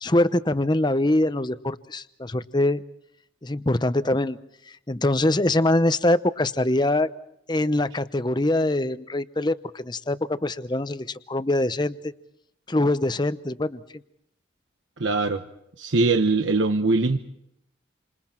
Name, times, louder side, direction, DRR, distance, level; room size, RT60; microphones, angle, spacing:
voice 1, 0.0-2.8 3.4-4.4 4.9-7.1 7.5-12.1 12.7-13.8, left 1 dB, 25° left, 13 dB, 0.8 m, -23 dB
voice 2, 15.0-15.4 15.8-17.2, right 3 dB, 75° right, 7 dB, 1.0 m, -21 dB
29.5 x 26.5 x 4.4 m, 0.78 s
head